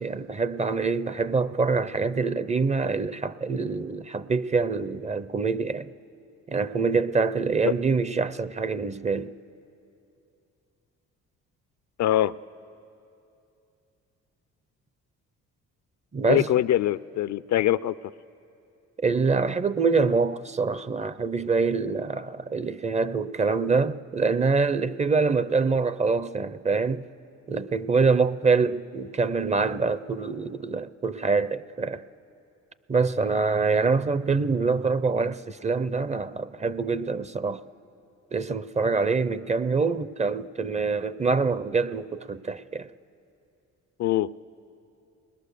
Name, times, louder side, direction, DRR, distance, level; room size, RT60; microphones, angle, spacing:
voice 1, 0.0-5.9 6.5-9.3 16.1-16.5 19.0-27.1 27.5-32.0 32.9-37.6 38.3-42.9, right 4 dB, 25° right, 0.5 m, -25 dB
voice 2, 12.0-12.3 16.3-18.0 44.0-44.3, left 12 dB, 65° left, 0.5 m, -23 dB
29.5 x 21.0 x 6.7 m
cardioid pair, 90°, 30 cm